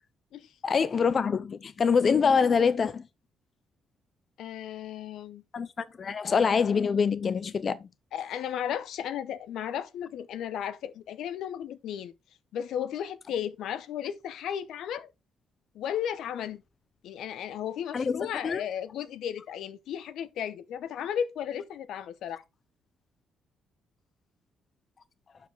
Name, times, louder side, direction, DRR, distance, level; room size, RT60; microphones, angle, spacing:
voice 1, 0.6-3.0 5.5-7.8 17.9-18.6, left 6 dB, 45° left, 0.6 m, -25 dB
voice 2, 4.4-5.4 8.1-12.1 12.5-15.1 15.7-16.6 17.0-22.4, left 9 dB, 80° left, 0.8 m, -34 dB
11.0 x 5.0 x 3.4 m
cardioid pair, 90°, 0 cm